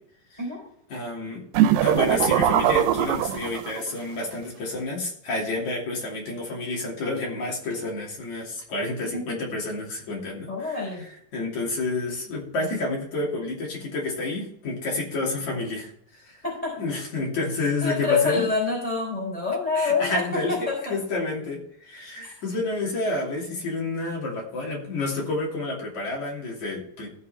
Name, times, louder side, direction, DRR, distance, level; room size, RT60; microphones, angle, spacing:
voice 1, 0.9-1.4 1.8-16.4 16.8-18.4 19.7-20.5 20.9-27.1, left 2 dB, 55° left, -3 dB, 4.0 m, -29 dB
sound 1, 1.5-3.9, right 11 dB, 85° right, 2.4 m, -21 dB
voice 2, 10.5-11.1 16.4-16.7 17.8-20.2 20.5-20.9 22.2-22.3, left 4 dB, 15° left, -3 dB, 4.2 m, -26 dB
15.0 x 5.7 x 4.4 m, 0.67 s
omnidirectional pair, 3.9 m